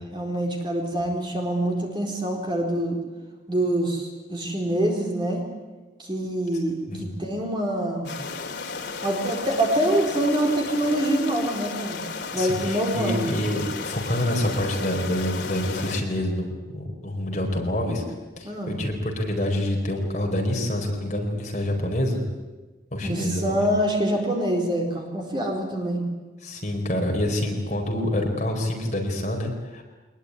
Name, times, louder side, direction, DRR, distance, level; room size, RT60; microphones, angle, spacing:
voice 1, 0.1-3.0 3.5-5.5 6.0-8.1 9.0-12.0 12.3-13.3 18.4-18.8 23.0-26.0, right 1 dB, 25° right, 1 dB, 4.2 m, -25 dB
sound 1, 8.0-16.0, left 4 dB, 80° left, 2.2 m, -34 dB
voice 2, 12.4-18.0 18.4-22.2 22.9-23.7 26.4-29.8, left 1 dB, 40° left, 1 dB, 4.6 m, -27 dB
23.5 x 20.5 x 9.7 m, 1.2 s
head